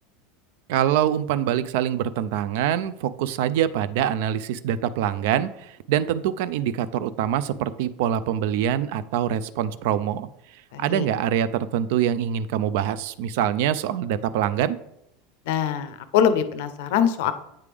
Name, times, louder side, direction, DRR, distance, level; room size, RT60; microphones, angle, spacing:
voice 1, 0.7-10.3 10.8-14.8, right 10 dB, 70° right, 15 dB, 0.3 m, -24 dB
voice 2, 10.7-11.1 15.5-17.3, left 9 dB, 70° left, 12 dB, 0.5 m, -23 dB
8.4 x 3.4 x 3.3 m, 0.82 s
hypercardioid pair, 95°, 0 cm